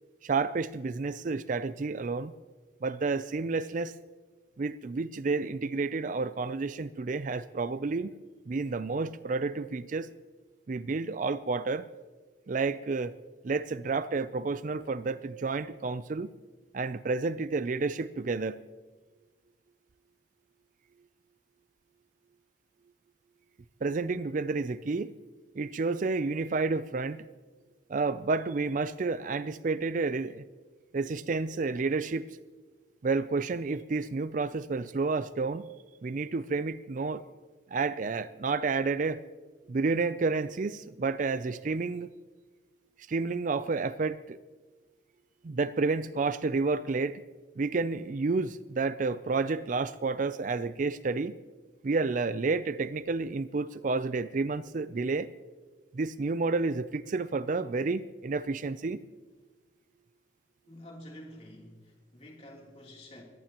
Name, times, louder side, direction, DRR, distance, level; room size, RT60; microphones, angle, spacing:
voice 1, 0.2-2.3 2.8-3.9 4.6-8.1 8.5-10.1 10.7-11.9 12.5-16.3 16.7-18.6 23.8-25.1 25.6-27.2 27.9-30.4 30.9-32.3 33.0-35.6 36.0-37.2 37.7-39.3 39.7-42.1 43.1-44.4 45.4-47.2 47.6-51.3 51.8-55.3 55.9-59.0, right 3 dB, 45° right, 0.4 m, -30 dB
voice 2, 60.6-63.2, left 1 dB, 35° left, 3.3 m, -49 dB
22.5 x 17.5 x 3.0 m
head